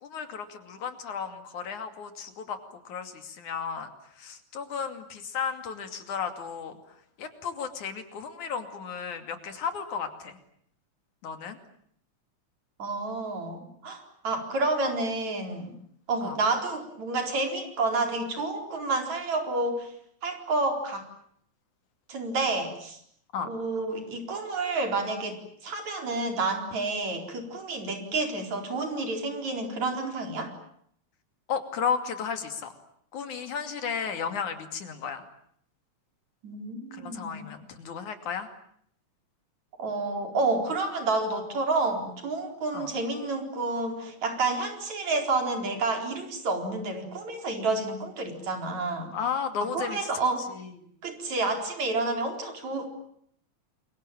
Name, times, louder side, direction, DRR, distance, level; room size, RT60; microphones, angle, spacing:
voice 1, 0.0-2.6 2.9-3.9 4.2-6.8 7.2-10.4 11.2-11.6 16.2-16.4 23.3-23.5 31.5-32.7 33.1-35.3 36.9-38.5 42.7-42.9 49.1-50.1 50.5-50.9, left 6 dB, 85° left, 8 dB, 4.1 m, -34 dB
voice 2, 12.8-15.7 16.1-19.9 20.2-21.0 22.1-23.0 23.4-25.4 25.6-30.5 36.4-37.5 39.8-49.1 49.7-50.4 51.0-52.9, right 3 dB, 70° right, 4 dB, 5.7 m, -29 dB
28.0 x 23.5 x 8.9 m, 0.67 s
omnidirectional pair, 3.3 m